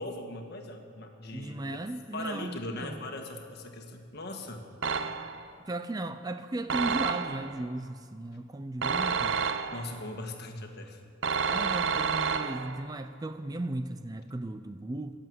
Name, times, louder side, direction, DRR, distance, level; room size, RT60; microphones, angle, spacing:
voice 1, 0.0-1.8 2.1-4.6 9.7-11.0, left 2 dB, 55° left, 4 dB, 1.7 m, -39 dB
voice 2, 1.3-3.0 5.7-9.4 11.5-15.1, right 2 dB, 20° right, 9 dB, 0.4 m, -36 dB
sound 1, 4.8-5.5 6.7-7.6 8.8-10.0 11.2-12.9, right 6 dB, 65° right, 0.7 m, -30 dB
22.0 x 7.8 x 7.8 m, 2.3 s
head